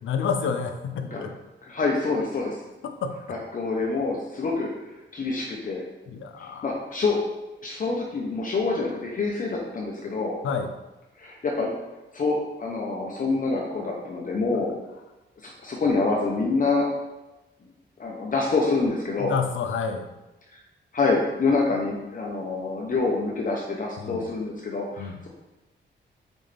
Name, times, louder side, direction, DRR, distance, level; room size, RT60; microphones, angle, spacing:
voice 1, 0.0-1.4 2.8-3.4 6.1-6.7 10.4-10.7 14.5-14.6 19.2-20.1 24.0-24.3 25.0-25.2, left 6 dB, 85° left, 7 dB, 0.6 m, -29 dB
voice 2, 1.7-2.6 3.3-4.7 5.1-5.8 6.4-7.2 7.6-10.3 11.2-11.7 12.1-14.7 15.6-16.8 18.0-19.3 20.9-25.3, left 3 dB, 45° left, -2 dB, 0.9 m, -26 dB
6.2 x 4.4 x 3.4 m, 1.0 s
wide cardioid pair, 120°, 20 cm